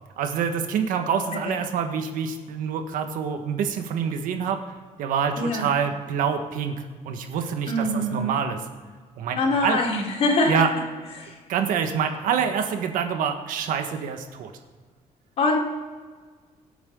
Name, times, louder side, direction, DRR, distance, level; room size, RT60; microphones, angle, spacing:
voice 1, 0.2-4.6 5.0-8.6 9.2-9.8 10.5-10.7 11.5-14.5, right 7 dB, 80° right, 5 dB, 1.7 m, -26 dB
voice 2, 5.4-5.7 7.7-8.4 9.4-10.6 11.1-11.3 15.4-15.6, left 2 dB, 50° left, -1 dB, 3.8 m, -23 dB
25.0 x 9.0 x 3.9 m, 1.5 s
cardioid pair, 145°, 14 cm